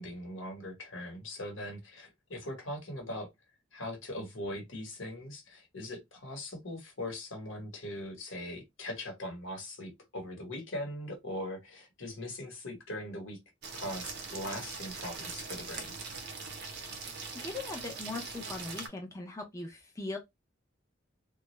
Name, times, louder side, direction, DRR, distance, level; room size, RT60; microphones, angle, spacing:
voice 1, 0.0-3.3 3.7-13.4 13.7-16.0, left 1 dB, 80° left, 1.1 m, -40 dB
sound 1, 13.6-18.9, right 4 dB, 55° right, 0.6 m, -41 dB
voice 2, 17.3-20.2, left 3 dB, 15° left, 0.5 m, -40 dB
2.3 x 2.0 x 3.0 m
head